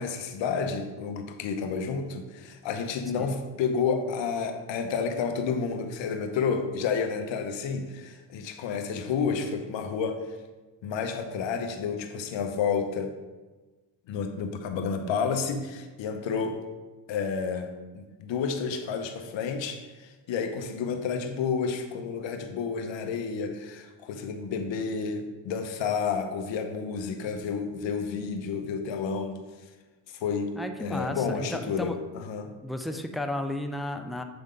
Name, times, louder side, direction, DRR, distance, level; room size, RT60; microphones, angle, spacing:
voice 1, 0.0-10.2 10.8-13.1 14.1-16.6 17.1-29.4 30.2-32.5, left 5 dB, 65° left, 6 dB, 0.9 m, -30 dB
voice 2, 30.6-32.0 32.6-34.2, left 1 dB, ahead, 6 dB, 0.4 m, -33 dB
7.9 x 3.5 x 3.8 m, 1.2 s
supercardioid pair, 75°, 48 cm